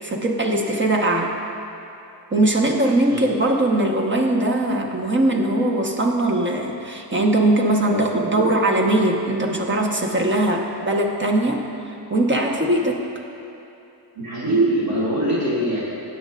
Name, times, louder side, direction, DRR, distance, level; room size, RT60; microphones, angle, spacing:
voice 1, 0.0-1.4 2.3-11.6 12.1-13.0, right 1 dB, 25° right, 1 dB, 1.2 m, -20 dB
voice 2, 14.1-15.8, right 1 dB, 60° right, -8 dB, 2.5 m, -22 dB
19.5 x 8.9 x 2.5 m, 2.8 s
cardioid pair, 125°, 42 cm